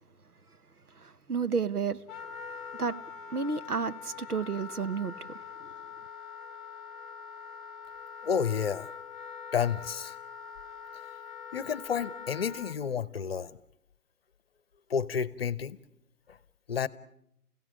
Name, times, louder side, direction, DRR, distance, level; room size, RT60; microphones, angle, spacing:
voice 1, 1.0-2.0 2.8-3.0 3.3-5.1, right 5 dB, 80° right, 1.2 m, -31 dB
Wind instrument woodwind instrument, 2.1-12.7, left 7 dB, ahead, 0.9 m, -44 dB
voice 2, 8.2-8.9 9.5-10.1 11.5-13.5 14.9-15.8 16.7-16.9, left 7 dB, 40° left, 0.9 m, -30 dB
30.0 x 16.5 x 8.7 m
figure-of-eight pair, 135°, 45 cm